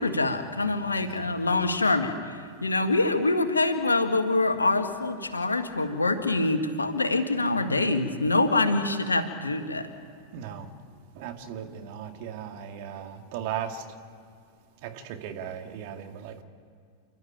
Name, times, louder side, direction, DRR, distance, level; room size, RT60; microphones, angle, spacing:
voice 1, 0.0-9.9, left 2 dB, 80° left, 1.7 m, -25 dB
voice 2, 10.3-10.7 11.2-13.8 14.8-16.4, right 9 dB, 45° right, 2.3 m, -37 dB
29.5 x 12.5 x 8.9 m
figure-of-eight pair, 90°, 0 cm